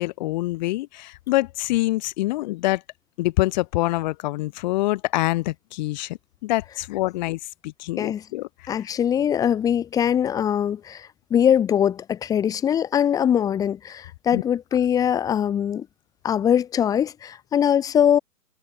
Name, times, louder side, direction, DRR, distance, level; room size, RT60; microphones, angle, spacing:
voice 1, 0.0-2.8 3.2-8.9 14.3-14.4, left 19 dB, 30° left, 6.6 m, -26 dB
voice 2, 8.7-15.9 16.2-18.2, left 9 dB, 5° left, 1.7 m, -22 dB
figure-of-eight pair, 145°, 47 cm